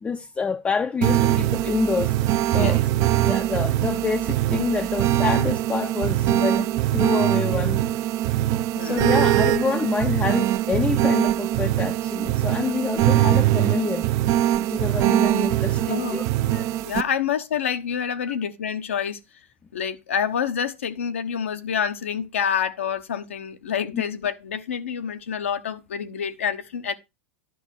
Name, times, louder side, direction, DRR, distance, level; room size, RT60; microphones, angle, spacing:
voice 1, 0.0-2.2 2.5-2.8 3.2-7.8 8.8-14.1 14.7-16.2 23.9-24.0, left 5 dB, 15° left, 0.5 m, -27 dB
sound 1, 1.0-17.0, right 14 dB, 50° right, 0.6 m, -22 dB
voice 2, 8.7-9.1 15.9-16.2 16.5-19.2 19.7-26.9, left 8 dB, 85° left, 1.0 m, -27 dB
10.5 x 5.8 x 4.5 m
hypercardioid pair, 105°, 7 cm